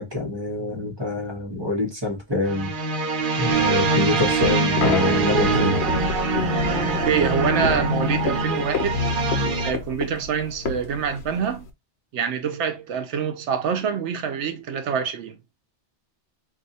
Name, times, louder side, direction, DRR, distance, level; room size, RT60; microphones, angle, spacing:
voice 1, 0.0-2.7 3.4-5.8, left 2 dB, 25° right, 1.0 m, -26 dB
sound 1, 2.4-9.7, right 3 dB, 50° right, 0.8 m, -23 dB
sound 2, 3.6-11.7, left 4 dB, 75° left, 1.0 m, -29 dB
voice 2, 7.1-9.0 9.6-11.6 12.1-15.4, right 7 dB, 90° right, 0.9 m, -25 dB
2.7 x 2.4 x 4.0 m
omnidirectional pair, 1.2 m